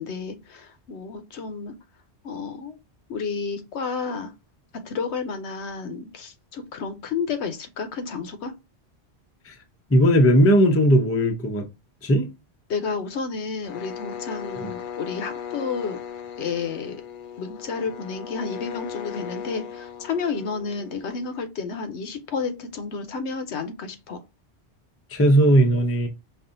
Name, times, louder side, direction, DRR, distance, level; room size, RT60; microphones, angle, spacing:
voice 1, 0.0-1.7 2.2-2.8 3.1-4.3 4.8-8.5 12.7-16.0 16.4-17.0 17.4-24.2, left 5 dB, 85° left, 1.0 m, -31 dB
voice 2, 9.9-11.6 12.0-12.3 14.6-14.7 25.1-26.1, equal, 20° left, 0.4 m, -18 dB
sound 1, 13.6-21.4, left 8 dB, 60° left, 0.6 m, -37 dB
5.3 x 2.4 x 2.6 m
omnidirectional pair, 1.1 m